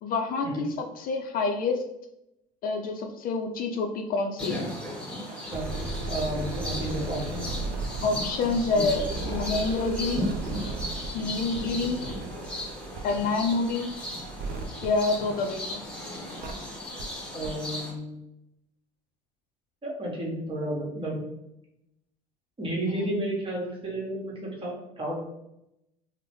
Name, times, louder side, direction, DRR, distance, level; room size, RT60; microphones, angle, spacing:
voice 1, 0.0-1.8 2.6-4.6 8.0-10.4 11.1-12.0 13.0-14.0 14.8-15.8 22.9-23.1, left 3 dB, 50° left, 4 dB, 0.4 m, -28 dB
sound 1, 4.4-17.9, left 1 dB, 5° left, 1.3 m, -36 dB
voice 2, 5.3-5.7 6.1-7.5 8.7-8.9 17.3-18.2 19.8-21.2 22.6-25.2, right 1 dB, 30° right, -3 dB, 1.2 m, -32 dB
sound 2, 5.4-15.8 16.4-16.5 17.0-17.1 17.4-17.5, right 3 dB, 55° right, 0.5 m, -36 dB
2.9 x 2.1 x 3.0 m, 0.85 s
hypercardioid pair, 65°, 19 cm